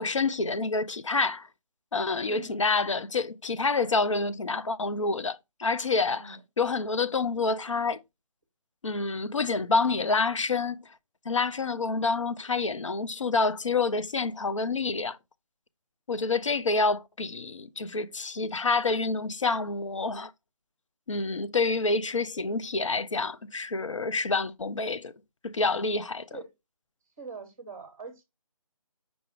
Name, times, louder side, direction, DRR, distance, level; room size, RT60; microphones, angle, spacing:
voice 1, 0.0-1.5 1.9-6.2 6.6-8.0 8.8-10.8 11.3-15.2 16.1-20.3 21.1-25.1 25.4-26.3, left 3 dB, 55° left, 0.4 m, -28 dB
voice 2, 2.3-2.6 6.1-6.4 26.3-26.5 27.2-28.2, right 4 dB, 25° right, 0.9 m, -43 dB
5.0 x 2.4 x 4.4 m
figure-of-eight pair, 150°, 19 cm